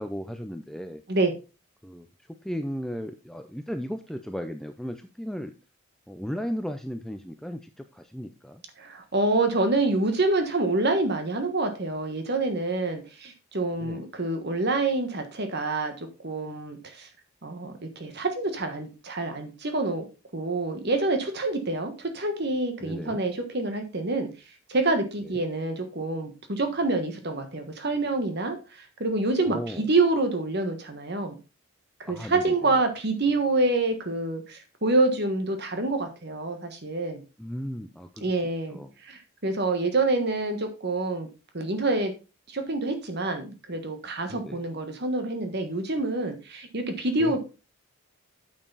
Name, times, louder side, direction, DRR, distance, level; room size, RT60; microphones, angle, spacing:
voice 1, 0.0-1.0 1.8-5.5 6.1-8.6 13.8-14.1 22.8-23.2 25.2-25.4 29.4-29.9 32.0-32.7 37.4-38.3 38.7-38.9 44.3-44.6 47.2-47.4, equal, ahead, 7 dB, 0.5 m, -36 dB
voice 2, 8.8-17.1 17.4-20.1 20.3-24.3 24.7-31.4 32.0-37.2 38.2-41.3 41.5-42.1 42.5-47.4, right 2 dB, 50° right, 6 dB, 1.4 m, -27 dB
8.9 x 6.7 x 4.0 m, 0.29 s
head